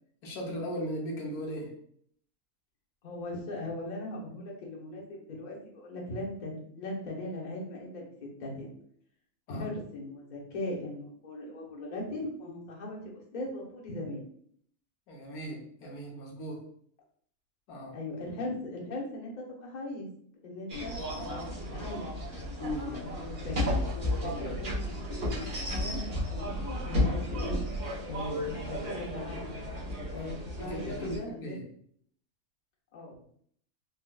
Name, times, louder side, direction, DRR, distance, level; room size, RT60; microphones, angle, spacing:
voice 1, 0.2-1.7 9.5-9.6 15.1-16.6 17.7-18.0 22.6-23.0 30.2-30.3 30.6-31.6, equal, 85° left, -1 dB, 1.3 m, -37 dB
voice 2, 3.0-8.7 9.5-14.2 17.9-20.1 20.4-22.1 22.9-27.6 28.0-29.5 30.1-31.6 32.9-33.1, left 2 dB, 40° left, -3 dB, 0.7 m, -39 dB
sound 1, 20.7-31.2, left 1 dB, 45° right, 1.2 m, -33 dB
4.0 x 2.2 x 2.3 m, 0.63 s
omnidirectional pair, 1.5 m